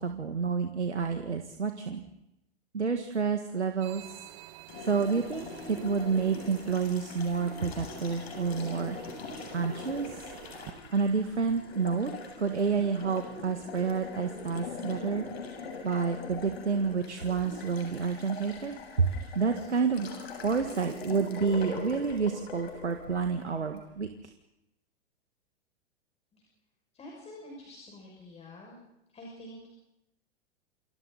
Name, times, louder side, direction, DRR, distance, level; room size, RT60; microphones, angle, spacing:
voice 1, 0.0-2.0 2.7-4.2 4.8-9.0 9.5-10.2 10.9-12.1 12.4-15.3 15.8-20.1 20.4-24.1, right 5 dB, 90° right, 6 dB, 1.8 m, -29 dB
sound 1, 3.8-10.7, right 14 dB, 45° right, 2.0 m, -50 dB
Water tap faucet, 4.7-23.8, left 4 dB, 65° left, 7.9 m, -42 dB
voice 2, 26.9-28.8 29.1-29.7, left 1 dB, 20° left, -1 dB, 6.4 m, -47 dB
29.5 x 26.5 x 4.1 m, 0.84 s
hypercardioid pair, 110°, 33 cm